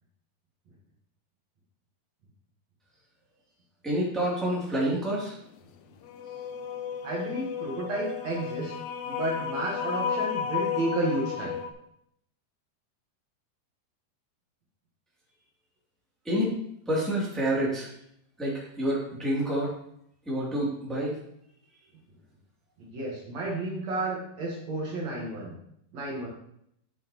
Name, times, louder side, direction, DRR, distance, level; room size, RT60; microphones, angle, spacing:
voice 1, 3.8-5.3 16.2-16.6 16.9-17.9 18.4-19.7 20.2-21.2, right 1 dB, ahead, -6 dB, 1.6 m, -28 dB
sound 1, 6.1-11.7, left 7 dB, 80° left, 2.1 m, -33 dB
voice 2, 7.0-8.7 9.1-11.6 22.8-25.5 25.9-26.3, right 2 dB, 55° right, -3 dB, 2.1 m, -32 dB
8.5 x 8.2 x 3.0 m, 0.73 s
omnidirectional pair, 4.8 m